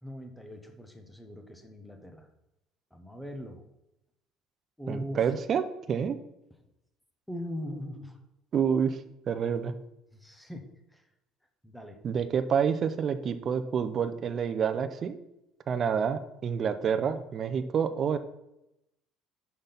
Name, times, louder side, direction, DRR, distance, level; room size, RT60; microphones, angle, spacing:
voice 1, 0.0-2.3 2.9-3.6 4.8-5.3 7.3-8.2 10.1-11.0 11.6-12.0, equal, 5° left, 5 dB, 0.9 m, -41 dB
voice 2, 4.9-6.2 8.5-9.0 9.3-9.7 12.0-15.1 15.7-18.2, right 7 dB, 35° right, 9 dB, 0.5 m, -28 dB
6.0 x 5.2 x 5.7 m, 0.87 s
cardioid pair, 155°, 0 cm